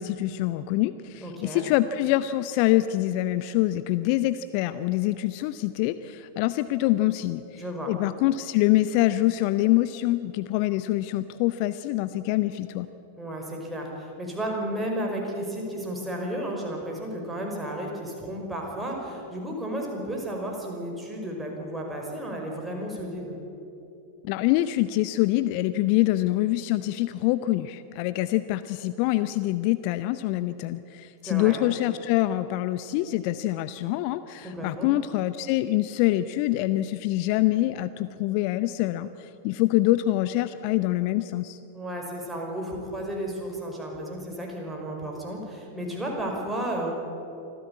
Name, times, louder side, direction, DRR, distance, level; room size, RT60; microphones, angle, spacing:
voice 1, 0.0-12.9 24.2-41.6, left 16 dB, 45° left, 13 dB, 0.6 m, -25 dB
voice 2, 1.2-1.6 7.6-7.9 13.2-23.4 31.2-31.6 34.4-34.9 41.7-46.9, right 1 dB, 5° right, -1 dB, 5.5 m, -33 dB
25.0 x 15.0 x 8.6 m, 2.9 s
figure-of-eight pair, 90°, 0 cm